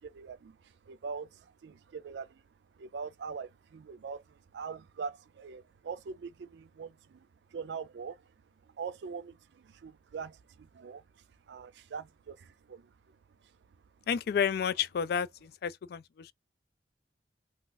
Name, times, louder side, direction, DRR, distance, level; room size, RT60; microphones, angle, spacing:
voice 1, 0.0-2.4 2.7-8.3 8.6-13.6, right 5 dB, 70° right, 0.4 m, -43 dB
voice 2, 14.1-16.3, left 7 dB, 60° left, 0.3 m, -31 dB
2.4 x 2.4 x 3.8 m
head